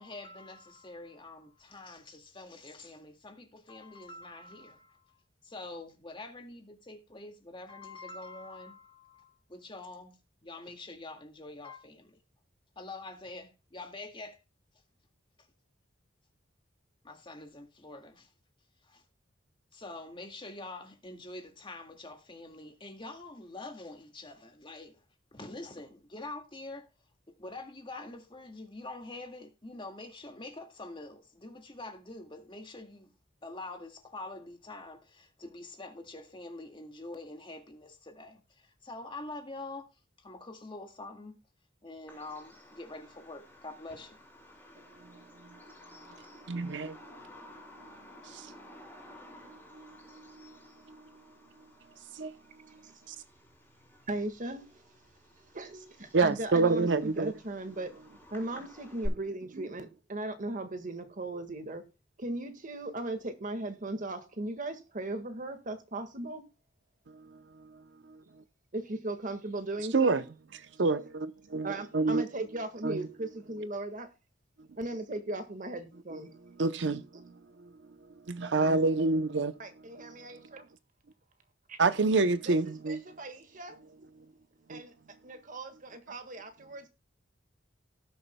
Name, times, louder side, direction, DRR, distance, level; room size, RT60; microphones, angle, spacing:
voice 1, 0.0-5.2 5.4-10.2 10.4-12.2 12.8-14.4 17.0-18.3 18.8-19.0 19.7-25.0 25.3-26.9 27.4-33.1 33.4-39.9 40.2-41.4 41.8-44.2, left 2 dB, 25° left, 1.9 m, -45 dB
Bird vocalization bird call bird song, 42.1-59.1, left 1 dB, 10° left, 3.9 m, -51 dB
voice 2, 46.5-47.0 48.2-48.5 49.8-49.9 50.4-50.5 52.2-52.3 56.1-57.3 69.9-70.2 70.8-71.7 71.9-72.2 72.8-73.0 76.6-77.3 78.3-79.5 81.8-83.0 84.7-84.8, right 3 dB, 70° right, 0.7 m, -27 dB
voice 3, 54.1-58.0 58.3-61.9 62.2-66.4 68.7-70.2 71.6-74.1 74.7-76.3 77.1-77.2 79.6-80.7 81.7-81.8 82.3-83.8 84.7-86.9, right 2 dB, 45° right, 1.6 m, -38 dB
18.0 x 7.0 x 2.2 m
head